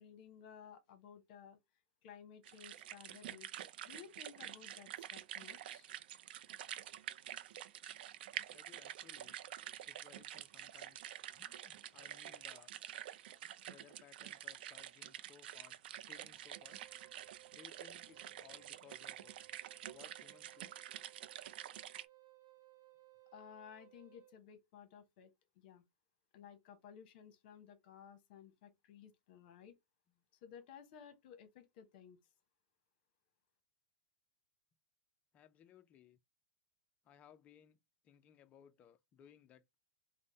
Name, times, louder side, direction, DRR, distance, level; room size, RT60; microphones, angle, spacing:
voice 1, 0.0-1.6 2.0-3.5 3.8-5.9 23.3-25.3 25.6-25.8 26.3-29.7 30.4-32.2, left 8 dB, 55° left, 0.9 m, -56 dB
sound 1, 2.4-22.0, right 11 dB, 65° right, 0.4 m, -48 dB
voice 2, 8.5-9.4 9.9-12.7 13.7-16.8 17.5-19.3 19.9-20.8 35.3-36.2 37.0-37.8 38.0-39.8, left 10 dB, 25° left, 0.4 m, -63 dB
Wind instrument woodwind instrument, 16.5-24.3, right 17 dB, 50° right, 0.9 m, -63 dB
3.6 x 2.1 x 3.8 m
hypercardioid pair, 145°, 6 cm